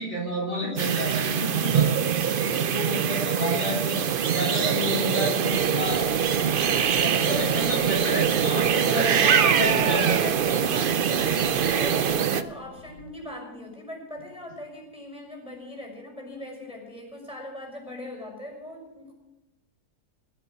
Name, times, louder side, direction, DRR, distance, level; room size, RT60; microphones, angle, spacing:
voice 1, 0.0-6.1 7.0-10.2, equal, 40° left, -3 dB, 3.7 m, -30 dB
sound 1, 0.8-12.4, right 7 dB, 65° right, 0.5 m, -23 dB
sound 2, 5.5-13.2, right 1 dB, 85° left, 6.8 m, -45 dB
voice 2, 8.4-11.3 11.7-19.1, left 1 dB, 5° right, 1 dB, 5.9 m, -40 dB
21.5 x 8.1 x 6.2 m, 1.0 s
omnidirectional pair, 1.7 m